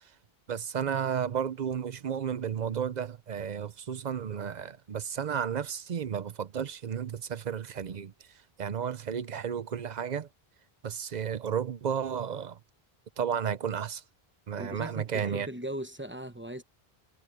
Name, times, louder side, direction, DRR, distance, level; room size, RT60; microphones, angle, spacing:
voice 1, 0.5-8.1 8.6-10.3 10.8-12.6 13.2-14.0 14.5-15.5, right 8 dB, 50° right, 0.7 m, -32 dB
voice 2, 14.6-16.6, right 1 dB, 10° right, 0.9 m, -38 dB
omnidirectional pair, 1.0 m